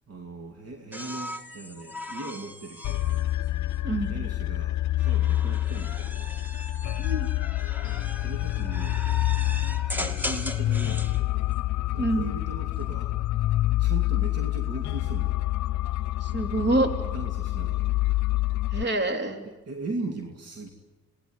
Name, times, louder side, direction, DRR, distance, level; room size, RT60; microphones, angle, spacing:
voice 1, 0.1-3.0 4.1-6.3 8.2-9.0 9.9-11.5 11.9-13.1 13.8-15.4 17.1-17.9 19.4-20.7, right 2 dB, 55° right, 4 dB, 2.8 m, -39 dB
sound 1, 0.9-4.2 5.0-11.2 12.7-13.2, left 1 dB, 5° right, 2.2 m, -39 dB
sound 2, 2.8-18.8, left 16 dB, 70° left, 0.8 m, -27 dB
voice 2, 12.0-12.3 16.2-16.9 18.7-19.4, right 2 dB, 35° right, 6 dB, 3.8 m, -26 dB
27.0 x 19.5 x 9.9 m, 1.2 s
cardioid pair, 90°, 30 cm